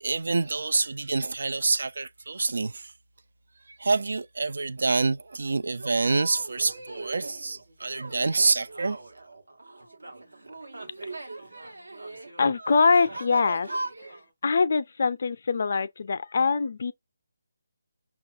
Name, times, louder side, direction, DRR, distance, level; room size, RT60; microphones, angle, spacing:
voice 1, 0.0-2.9 3.8-9.0, right 3 dB, 65° right, 0.3 m, -27 dB
sound 1, 5.8-14.3, right 2 dB, 85° right, 1.2 m, -40 dB
voice 2, 12.4-13.7 14.4-16.9, left 4 dB, 50° left, 0.4 m, -23 dB
5.7 x 2.3 x 2.6 m
figure-of-eight pair, 150°, 0 cm